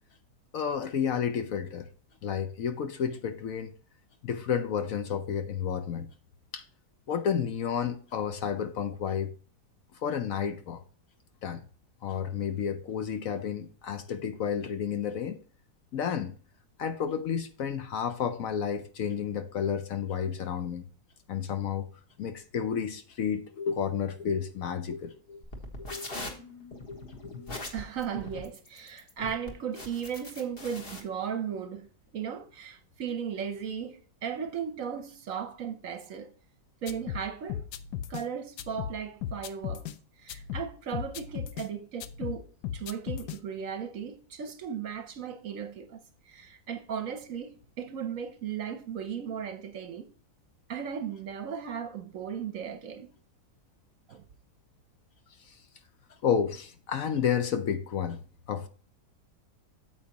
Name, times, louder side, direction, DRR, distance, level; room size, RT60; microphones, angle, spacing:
voice 1, 0.5-1.9 2.2-3.7 4.2-6.1 6.5-6.6 7.1-9.3 10.0-10.8 11.4-11.6 12.0-15.4 15.9-16.3 16.8-20.8 21.3-21.9 22.2-25.4 25.9-26.1 26.9-27.5 56.2-58.2 58.5-58.7, left 7 dB, 65° left, 1.0 m, -31 dB
sound 1, 25.4-31.0, left 2 dB, 35° left, 1.6 m, -41 dB
voice 2, 27.7-36.3 36.8-37.6 38.1-39.9 40.2-50.1 50.7-53.1 54.1-54.2, right 7 dB, 60° right, 1.0 m, -36 dB
sound 2, 36.9-38.3 38.6-40.0 40.3-41.7 42.0-43.4, left 10 dB, 80° left, 1.2 m, -37 dB
8.8 x 7.4 x 2.9 m
omnidirectional pair, 1.7 m